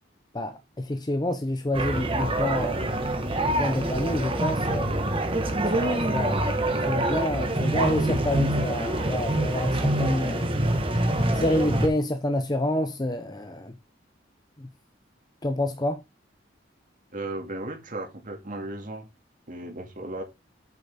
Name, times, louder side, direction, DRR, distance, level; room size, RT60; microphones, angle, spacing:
voice 1, 0.3-2.8 3.2-4.9 5.7-6.4 6.7-10.5 11.3-13.7 14.6-14.7 15.4-16.0, left 1 dB, 20° left, 0.7 m, -28 dB
sound 1, 1.7-11.9, right 1 dB, 30° right, 1.4 m, -25 dB
voice 2, 17.1-19.1 19.5-20.2, right 2 dB, 45° right, 2.4 m, -35 dB
8.6 x 6.8 x 3.6 m
head